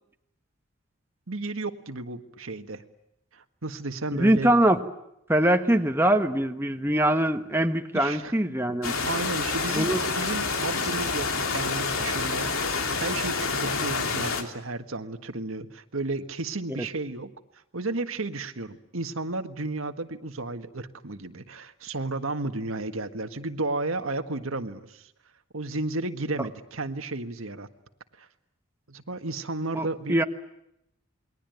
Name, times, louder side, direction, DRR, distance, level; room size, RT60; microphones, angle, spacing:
voice 1, 1.3-2.8 3.3-4.5 7.9-8.3 9.0-17.3 17.7-25.1 25.5-27.7 28.2-28.3 28.9-30.2, right 2 dB, 80° right, 7 dB, 1.7 m, -33 dB
voice 2, 4.1-4.8 5.3-8.9 9.7-10.0 26.4-26.5 29.7-30.2, right 1 dB, 10° right, 5 dB, 1.3 m, -23 dB
sound 1, 8.8-14.4, left 4 dB, 85° left, 3.2 m, -28 dB
28.5 x 22.0 x 9.3 m, 0.81 s
head